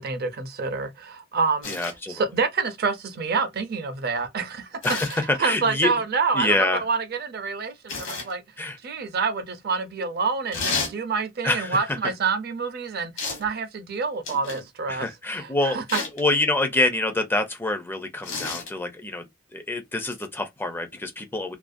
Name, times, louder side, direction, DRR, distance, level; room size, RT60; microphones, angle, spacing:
voice 1, 0.0-1.7 2.1-4.9 5.1-8.4 8.8-15.1 15.3-16.0, right 4 dB, 50° right, 0.5 m, -27 dB
sound 1, 1.6-2.0 4.8-5.3 7.9-8.3 10.5-11.0 13.2-13.5 14.2-14.7 15.9-16.2 18.2-18.7 20.1-20.2, left 4 dB, 65° left, 1.0 m, -31 dB
voice 2, 1.7-2.2 4.8-5.9 6.3-6.8 8.6-8.8 11.4-12.0 14.9-15.8 16.1-19.3 19.5-21.6, left 2 dB, 10° left, 0.4 m, -26 dB
2.4 x 2.1 x 2.4 m
head